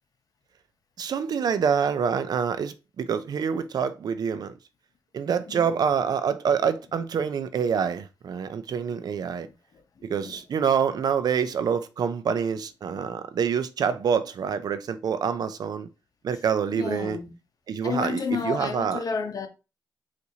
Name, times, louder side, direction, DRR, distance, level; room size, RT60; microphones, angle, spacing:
voice 1, 1.0-4.5 5.1-9.5 10.0-15.9 16.2-17.2 17.7-19.0, right 7 dB, 65° right, 0.4 m, -26 dB
voice 2, 5.4-5.8 6.8-7.3 8.8-10.4 16.3-16.4 16.7-17.3 17.8-19.5, left 5 dB, 55° left, 0.7 m, -33 dB
4.1 x 2.5 x 2.8 m
cardioid pair, 75°, 7 cm